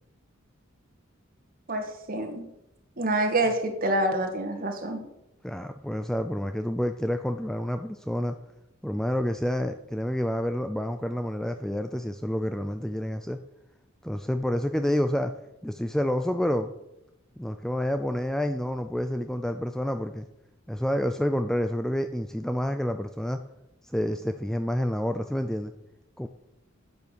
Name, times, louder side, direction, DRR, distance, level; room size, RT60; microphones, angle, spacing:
voice 1, 1.7-2.4 3.0-5.0, right 1 dB, 45° right, 4 dB, 2.2 m, -27 dB
voice 2, 5.4-8.4 8.8-13.4 14.0-15.3 15.6-16.7 17.4-20.2 20.7-23.4 23.9-25.7 26.2-26.3, equal, 5° left, 8 dB, 0.5 m, -28 dB
10.5 x 9.5 x 7.0 m, 0.89 s
head